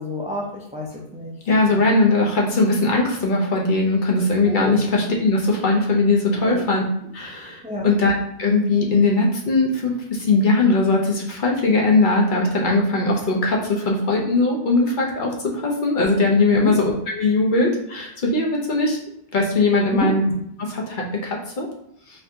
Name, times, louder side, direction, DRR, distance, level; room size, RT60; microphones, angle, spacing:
voice 1, 0.0-1.3 1.7-1.8 4.5-4.8 6.4-6.6 7.6-7.9 16.5-16.8 19.9-20.1, left 1 dB, 10° right, -2 dB, 0.4 m, -28 dB
voice 2, 1.5-6.8 7.1-19.0 19.3-20.2 20.6-21.7, left 2 dB, 55° left, -1 dB, 0.9 m, -20 dB
4.2 x 2.7 x 2.7 m, 0.74 s
omnidirectional pair, 1.1 m